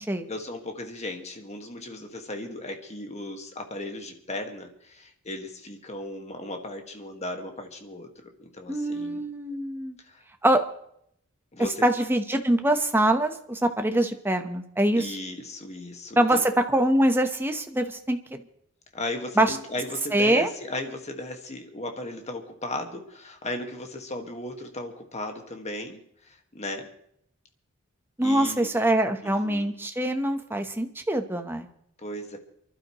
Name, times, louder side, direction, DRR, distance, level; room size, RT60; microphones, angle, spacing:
voice 1, 0.3-9.2 10.0-10.2 11.5-11.9 15.0-16.5 18.9-26.9 28.2-28.7 29.2-29.7 32.0-32.4, left 1 dB, 30° left, 4 dB, 1.7 m, -36 dB
voice 2, 8.7-10.0 10.4-10.6 11.8-15.1 16.2-18.4 19.4-19.6 20.1-20.5 28.2-31.7, right 1 dB, 10° right, 6 dB, 1.0 m, -24 dB
28.0 x 12.0 x 3.1 m, 0.71 s
head